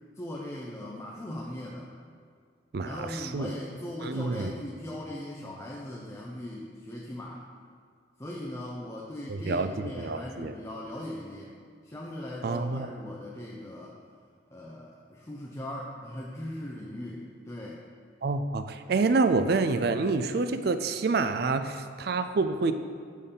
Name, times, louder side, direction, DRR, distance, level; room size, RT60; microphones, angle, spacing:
voice 1, 0.2-1.9 2.8-7.4 8.2-11.5 11.8-14.0 14.5-17.8, left 1 dB, 15° left, -3 dB, 0.5 m, -39 dB
voice 2, 2.7-3.5 4.0-4.5 9.3-9.7 10.0-10.5 12.4-12.9 18.2-22.7, right 3 dB, 55° right, 9 dB, 0.4 m, -27 dB
6.4 x 5.3 x 5.6 m, 2.1 s
head